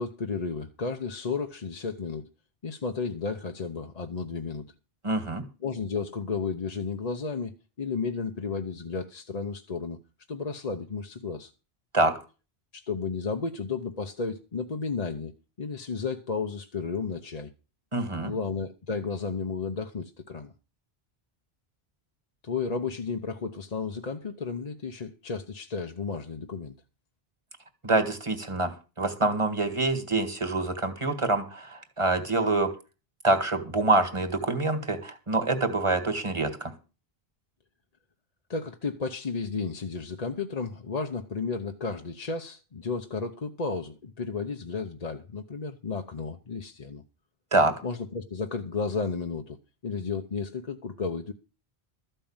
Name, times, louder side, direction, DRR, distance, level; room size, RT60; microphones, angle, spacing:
voice 1, 0.0-2.3 2.6-4.7 5.6-10.0 10.3-11.5 12.7-15.3 15.6-17.5 18.2-20.5 22.4-26.8 38.5-47.0 47.8-49.6 49.8-51.3, left 4 dB, 40° left, 0.9 m, -33 dB
voice 2, 5.0-5.4 11.9-12.1 17.9-18.3 27.8-28.7 29.0-32.7 33.2-36.7 47.5-47.7, right 2 dB, 30° right, 1.9 m, -26 dB
13.5 x 5.6 x 8.8 m
omnidirectional pair, 1.0 m